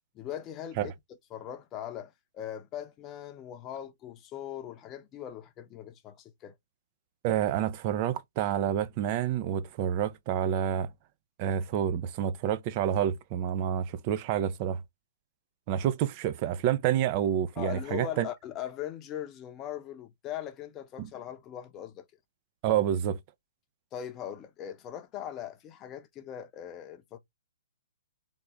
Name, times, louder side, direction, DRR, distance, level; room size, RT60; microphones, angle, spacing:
voice 1, 0.1-0.9 1.3-6.5 17.6-22.1 23.9-27.2, left 10 dB, 25° left, 0.7 m, -40 dB
voice 2, 7.2-10.9 11.4-14.8 15.7-18.3 21.0-21.1 22.6-23.2, right 10 dB, 35° right, 0.5 m, -28 dB
3.5 x 2.6 x 3.1 m
hypercardioid pair, 140°, 0 cm